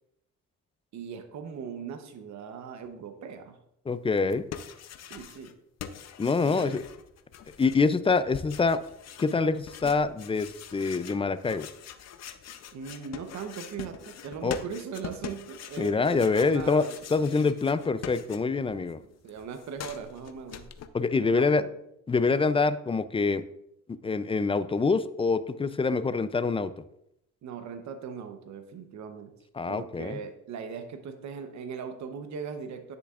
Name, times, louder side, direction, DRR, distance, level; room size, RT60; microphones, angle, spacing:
voice 1, 0.9-3.6 5.0-5.5 6.4-6.8 8.3-8.5 12.7-17.0 19.2-20.7 21.2-21.7 27.4-29.3 29.7-32.9, right 6 dB, 65° right, 7 dB, 0.9 m, -39 dB
voice 2, 3.9-4.4 6.2-6.8 7.6-8.8 9.2-11.7 14.4-14.6 15.8-16.8 17.1-19.0 20.9-21.6 22.1-23.4 24.0-26.7 29.6-30.2, left 4 dB, 20° left, 14 dB, 0.4 m, -25 dB
sound 1, 4.2-5.5 5.8-18.8 19.0-20.9, left 8 dB, 60° left, 0.7 m, -44 dB
10.0 x 6.8 x 2.4 m, 0.77 s
cardioid pair, 90°, 30 cm